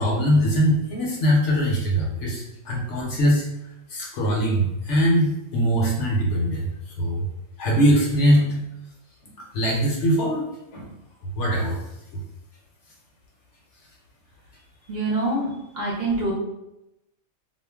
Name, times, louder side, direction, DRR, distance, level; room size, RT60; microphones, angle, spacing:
voice 1, 0.0-3.5 3.9-6.7 7.0-7.3 7.6-8.6 9.4-10.9 11.4-11.8 12.1-12.2, equal, 65° left, -2 dB, 0.8 m, -22 dB
voice 2, 14.9-16.3, right 2 dB, 55° right, -5 dB, 0.8 m, -25 dB
2.4 x 2.0 x 3.3 m, 0.89 s
omnidirectional pair, 1.4 m